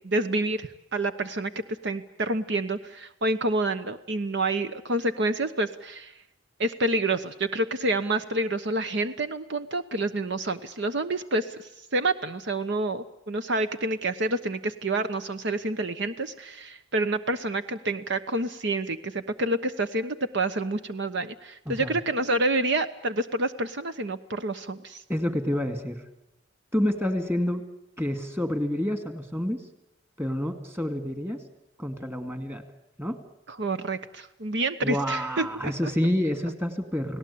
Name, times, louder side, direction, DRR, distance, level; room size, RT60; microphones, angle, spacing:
voice 1, 0.0-1.5 1.8-6.1 6.6-25.0 33.5-35.7, right 2 dB, 65° right, 10 dB, 1.1 m, -28 dB
voice 2, 21.7-22.0 25.1-26.0 26.7-27.6 28.0-29.6 30.2-31.4 31.8-32.6 33.0-33.2 34.8-37.2, equal, 10° right, 8 dB, 2.3 m, -28 dB
30.0 x 18.5 x 8.6 m, 0.91 s
head